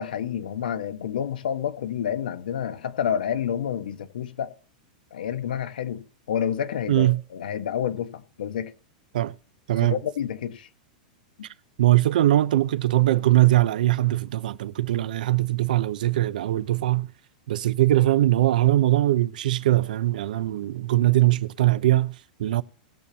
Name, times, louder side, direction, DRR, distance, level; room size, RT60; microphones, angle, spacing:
voice 1, 0.0-4.5 5.1-8.7 9.8-10.7, left 9 dB, 90° left, 1.3 m, -29 dB
voice 2, 6.9-7.2 9.1-9.3 9.7-10.0 11.8-17.1 17.5-22.6, right 15 dB, 75° right, 0.6 m, -21 dB
19.5 x 6.9 x 2.9 m
supercardioid pair, 160°, 5 cm